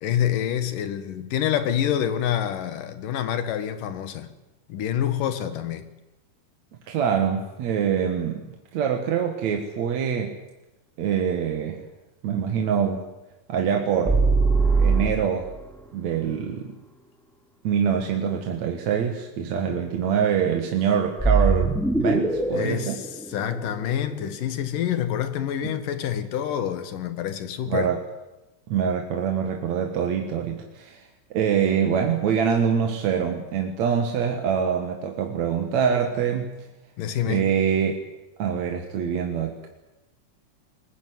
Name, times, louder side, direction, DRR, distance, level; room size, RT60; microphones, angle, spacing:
voice 1, 0.0-4.3 4.7-5.9 12.4-12.5 22.5-27.9 37.0-37.4, left 10 dB, 85° left, 3.2 m, -27 dB
voice 2, 6.9-8.5 8.7-10.3 11.0-11.8 12.2-13.0 13.5-14.2 14.8-15.5 15.9-16.8 17.6-23.0 27.7-28.0 28.7-36.6 37.2-37.9 38.4-39.7, right 7 dB, 60° right, 2.7 m, -25 dB
sound 1, 14.1-15.6 21.2-24.3, right 3 dB, ahead, 2.1 m, -22 dB
22.0 x 19.5 x 9.4 m
omnidirectional pair, 3.7 m